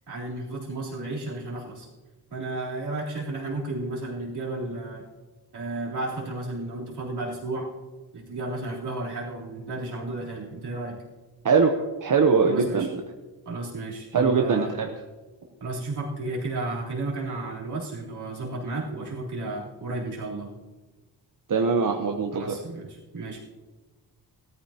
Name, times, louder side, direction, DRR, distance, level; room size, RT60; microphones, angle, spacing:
voice 1, 0.1-1.9 2.3-5.0 5.5-7.7 8.1-11.0 12.4-12.9 13.4-14.7 15.6-20.5 22.3-23.4, right 2 dB, 70° right, -5 dB, 3.5 m, -33 dB
voice 2, 11.4-12.9 14.1-14.9 21.5-22.6, right 5 dB, 50° right, 3 dB, 0.9 m, -22 dB
18.0 x 13.5 x 2.9 m, 1.2 s
wide cardioid pair, 120°, 41 cm